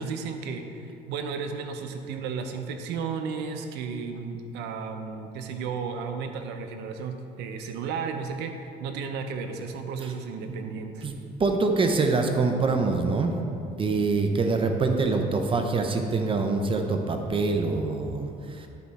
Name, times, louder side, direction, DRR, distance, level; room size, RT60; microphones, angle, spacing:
voice 1, 0.0-11.1, right 5 dB, 90° right, 6 dB, 0.7 m, -33 dB
voice 2, 11.4-13.4 13.8-18.7, right 3 dB, 30° right, 4 dB, 0.7 m, -25 dB
11.0 x 4.6 x 4.1 m, 2.6 s
cardioid pair, 110°, 17 cm